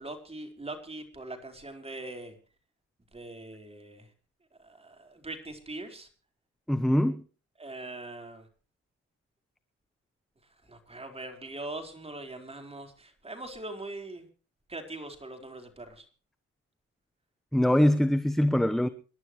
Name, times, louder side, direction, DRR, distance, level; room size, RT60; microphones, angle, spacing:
voice 1, 0.0-2.3 3.1-4.1 4.6-6.1 7.6-8.5 10.7-14.3 14.7-16.0, right 2 dB, 20° right, 4.5 m, -41 dB
voice 2, 6.7-7.2 17.5-18.9, left 1 dB, ahead, 0.9 m, -23 dB
27.5 x 11.5 x 3.1 m
cardioid pair, 90°, 30 cm